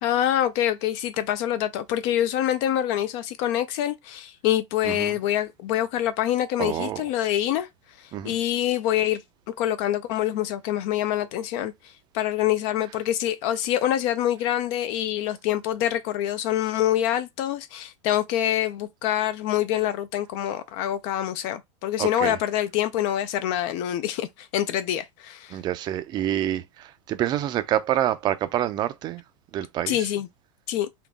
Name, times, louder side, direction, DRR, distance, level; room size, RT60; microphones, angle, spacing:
voice 1, 0.0-7.7 8.0-9.2 9.6-25.6 29.9-30.3 30.7-30.9, left 12 dB, 40° left, 0.4 m, -26 dB
voice 2, 4.8-5.2 6.6-7.0 8.1-8.4 22.0-22.4 25.5-29.2 29.5-30.1, right 12 dB, 25° right, 0.4 m, -27 dB
3.8 x 2.2 x 3.5 m
supercardioid pair, 150°, 16 cm